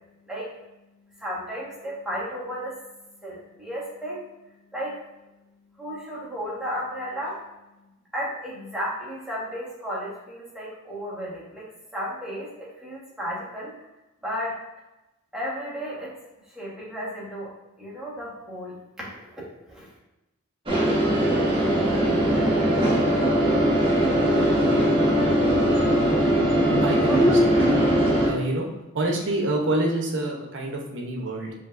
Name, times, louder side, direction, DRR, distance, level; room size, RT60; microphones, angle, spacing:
voice 1, 1.2-2.8 3.2-4.2 4.7-5.0 5.8-7.4 8.1-11.6 11.9-13.7 14.2-14.6 15.3-16.2 16.5-17.5 17.8-19.4 19.7-19.9 27.0-27.2, equal, 5° right, -7 dB, 1.4 m, -33 dB
sound 1, 20.7-28.3, equal, 25° right, 1.2 m, -20 dB
voice 2, 26.8-27.8 28.3-28.7 28.9-31.5, right 1 dB, 55° right, 0 dB, 0.8 m, -27 dB
5.1 x 3.2 x 2.6 m, 0.99 s
head